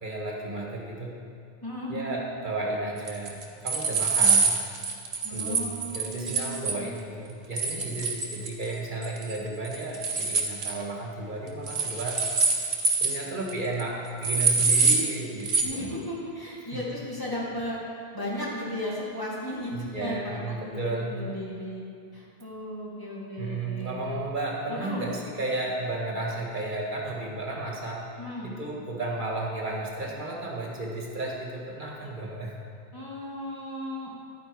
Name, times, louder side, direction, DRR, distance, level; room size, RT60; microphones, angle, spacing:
voice 1, 0.0-1.1 1.9-4.6 5.3-12.3 13.0-16.0 16.7-16.8 19.7-21.2 23.4-28.0 28.4-32.5, right 2 dB, 50° right, -2 dB, 1.8 m, -33 dB
voice 2, 1.6-2.2 5.2-6.9 15.6-17.8 18.1-21.8 22.1-24.1 24.7-25.1 28.2-28.5 32.9-34.1, left 1 dB, 20° left, -6 dB, 2.3 m, -35 dB
sound 1, 3.1-6.8 7.6-8.7 9.0-9.4 9.6-10.7 11.7-13.2 13.5-13.6 13.8-13.9 14.2-15.1 15.4-15.6, right 4 dB, 80° right, 1.4 m, -25 dB
12.0 x 8.9 x 4.7 m, 2.5 s
omnidirectional pair, 1.1 m